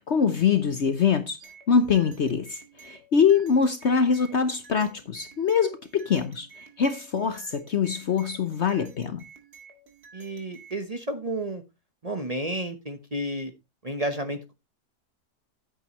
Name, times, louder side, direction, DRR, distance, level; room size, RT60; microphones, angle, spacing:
voice 1, 0.0-1.4 1.7-9.2, left 6 dB, 50° left, 1.0 m, -24 dB
sound 1, 1.4-10.8, right 5 dB, 70° right, 2.5 m, -52 dB
voice 2, 10.1-11.6 12.0-13.5 13.8-14.5, right 1 dB, 25° right, 1.0 m, -31 dB
10.5 x 8.8 x 3.1 m
omnidirectional pair, 1.7 m